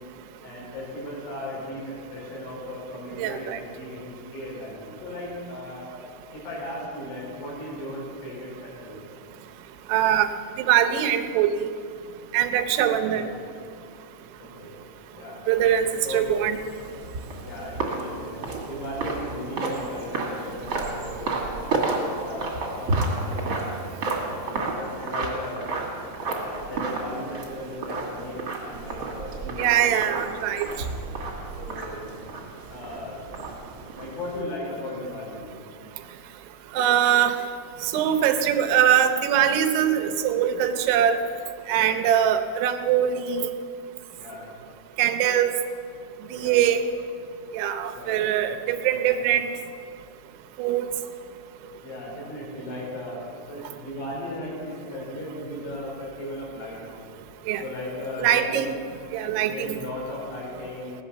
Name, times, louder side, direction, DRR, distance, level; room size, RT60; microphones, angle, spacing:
voice 1, 0.4-5.9 6.3-9.0 13.0-13.2 14.4-14.7 15.1-15.4 16.0-16.3 17.4-21.7 22.2-23.6 24.1-25.7 26.2-30.2 31.6-32.1 32.7-33.2 34.0-35.4 41.7-42.0 44.2-44.5 46.3-46.6 47.9-48.2 48.9-49.2 51.8-56.8 57.6-58.6 59.4-61.0, left 1 dB, 75° left, -3 dB, 6.8 m, -36 dB
voice 2, 3.2-3.6 9.9-10.3 10.6-11.7 12.3-13.2 15.5-16.6 29.6-30.7 36.7-37.4 37.8-41.2 41.7-43.5 45.0-45.5 46.3-46.8 47.5-49.4 50.6-50.9 57.5-57.6 58.2-58.7 59.1-59.8, right 10 dB, 80° right, 6 dB, 3.1 m, -22 dB
sound 1, 15.6-34.4, right 3 dB, 35° right, 2.4 m, -32 dB
17.0 x 11.0 x 7.3 m, 2.3 s
omnidirectional pair, 5.4 m